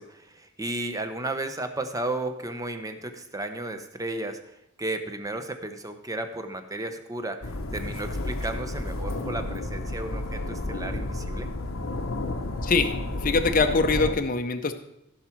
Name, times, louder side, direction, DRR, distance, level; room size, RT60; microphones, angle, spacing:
voice 1, 0.0-11.5, right 2 dB, 15° right, 7 dB, 0.9 m, -34 dB
sound 1, 7.4-14.2, left 2 dB, 80° left, 1.0 m, -31 dB
voice 2, 13.2-14.7, left 3 dB, 45° left, 7 dB, 0.7 m, -23 dB
15.5 x 5.9 x 4.6 m, 0.82 s
head